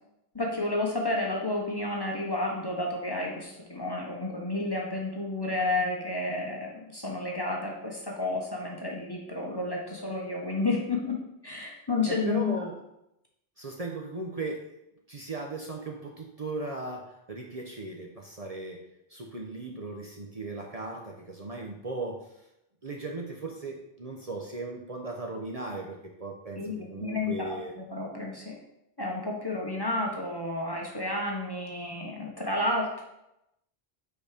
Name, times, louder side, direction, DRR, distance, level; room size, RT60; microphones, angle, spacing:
voice 1, 0.3-12.6 26.6-28.6 29.0-33.0, left 2 dB, 25° left, -1 dB, 1.0 m, -31 dB
voice 2, 12.0-12.7 13.6-14.6 15.1-17.0 17.3-18.8 19.1-22.2 22.8-27.7, right 3 dB, 40° right, 0 dB, 0.8 m, -37 dB
5.3 x 4.4 x 4.9 m, 0.86 s
omnidirectional pair, 1.1 m